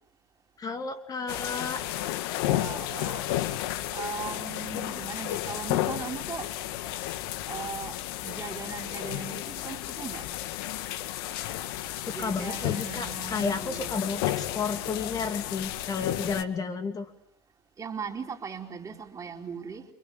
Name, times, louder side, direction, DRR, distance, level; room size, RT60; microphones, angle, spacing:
voice 1, 0.6-1.8 12.2-17.1, left 5 dB, 30° left, 2.9 m, -32 dB
sound 1, 1.3-16.4, left 14 dB, 70° left, 1.7 m, -33 dB
voice 2, 2.5-3.4 3.9-6.5 7.5-8.0 8.2-10.2 12.1-14.1 17.8-19.9, right 6 dB, 25° right, 4.3 m, -38 dB
30.0 x 25.5 x 7.3 m
hypercardioid pair, 95°, 13 cm